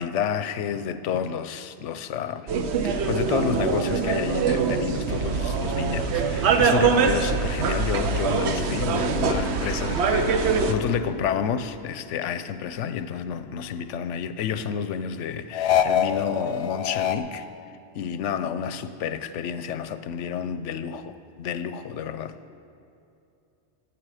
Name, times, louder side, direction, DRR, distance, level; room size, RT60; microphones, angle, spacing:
voice 1, 0.0-2.5 2.8-17.5 17.9-22.3, left 8 dB, 90° left, 12 dB, 0.9 m, -30 dB
sound 1, 2.5-10.7, right 5 dB, 65° right, 1.0 m, -24 dB
sound 2, 3.3-8.1, right 2 dB, 40° right, 1.0 m, -38 dB
sound 3, 8.2-12.1 12.4-14.0 15.5-17.2, left 9 dB, 65° left, 0.8 m, -29 dB
15.0 x 9.0 x 4.9 m, 2.7 s
omnidirectional pair, 1.2 m